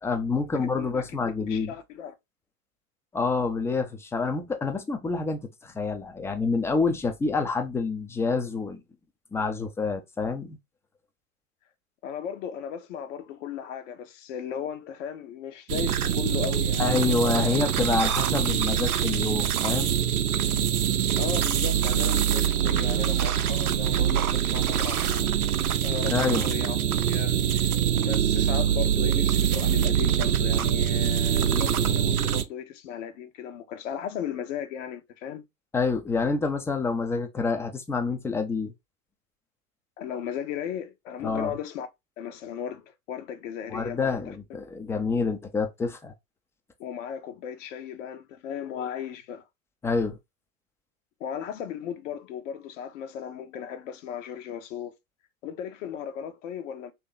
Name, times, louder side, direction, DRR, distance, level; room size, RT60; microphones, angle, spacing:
voice 1, 0.0-1.7 3.1-8.8 9.3-10.6 16.8-20.0 26.1-26.5 35.7-38.7 41.2-41.5 43.7-46.1 49.8-50.2, left 4 dB, 5° left, 0.4 m, -27 dB
voice 2, 0.5-2.1 12.0-17.5 21.2-25.3 25.8-26.8 27.1-27.7 28.1-35.4 40.0-41.9 42.2-44.2 46.8-49.4 51.2-54.9 55.4-56.9, left 8 dB, 60° left, 0.9 m, -36 dB
sound 1, 15.7-32.4, right 9 dB, 85° right, 0.5 m, -24 dB
3.0 x 2.8 x 3.8 m
figure-of-eight pair, 85°, 43 cm